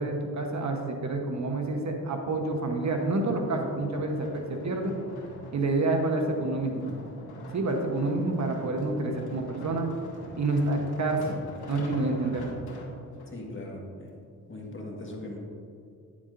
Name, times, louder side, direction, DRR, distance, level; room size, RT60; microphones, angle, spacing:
voice 1, 0.0-4.9 5.5-6.8 7.5-9.9 10.4-12.4, right 2 dB, 50° right, 3 dB, 1.1 m, -28 dB
sound 1, 2.3-13.3 13.9-14.0, left 1 dB, 80° left, 1.9 m, -44 dB
voice 2, 13.3-14.1 14.5-15.4, left 1 dB, 30° left, -1 dB, 1.7 m, -39 dB
10.0 x 7.2 x 2.6 m, 2.5 s
cardioid pair, 75°, 37 cm